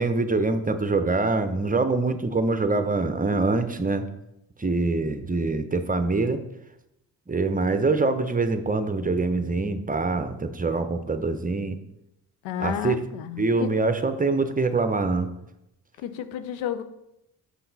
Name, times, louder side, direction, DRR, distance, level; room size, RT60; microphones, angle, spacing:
voice 1, 0.0-4.1 4.6-6.4 7.3-11.8 12.6-13.0 13.4-15.3, right 3 dB, 20° right, 9 dB, 0.8 m, -24 dB
voice 2, 12.4-13.7 16.0-16.8, left 9 dB, 75° left, 11 dB, 0.7 m, -31 dB
5.9 x 5.8 x 4.1 m, 0.85 s
hypercardioid pair, 45°, 46 cm